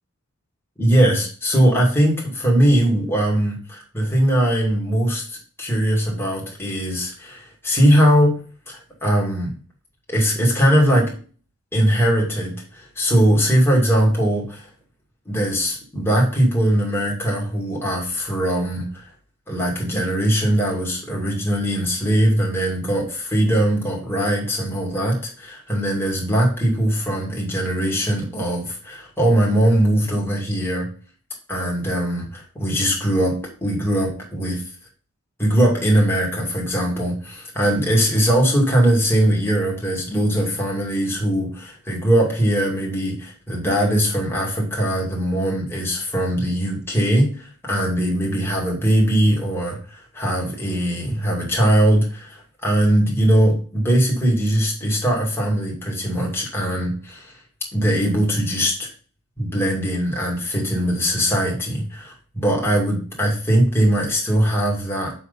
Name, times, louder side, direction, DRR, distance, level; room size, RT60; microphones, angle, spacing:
voice 1, 0.8-8.3 8.7-9.5 10.1-11.1 11.7-14.7 15.3-19.1 19.5-30.9 31.5-34.6 35.4-57.4 57.7-58.9 59.4-65.1, right 1 dB, 10° left, -2 dB, 2.4 m, -20 dB
6.9 x 4.3 x 5.3 m, 0.39 s
head